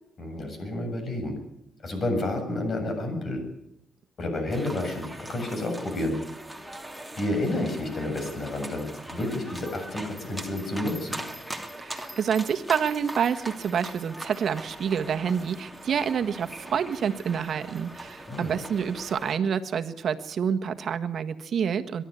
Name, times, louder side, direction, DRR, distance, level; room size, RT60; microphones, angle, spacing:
voice 1, 0.2-1.3 1.8-3.4 4.2-6.2 7.2-11.2 18.3-18.6, left 1 dB, 45° left, 5 dB, 7.5 m, -30 dB
sound 1, 4.5-19.4, right 1 dB, ahead, 2.8 m, -41 dB
voice 2, 11.8-22.0, right 7 dB, 60° right, 8 dB, 1.5 m, -28 dB
23.0 x 12.0 x 9.9 m, 0.82 s
cardioid pair, 90°, 0 cm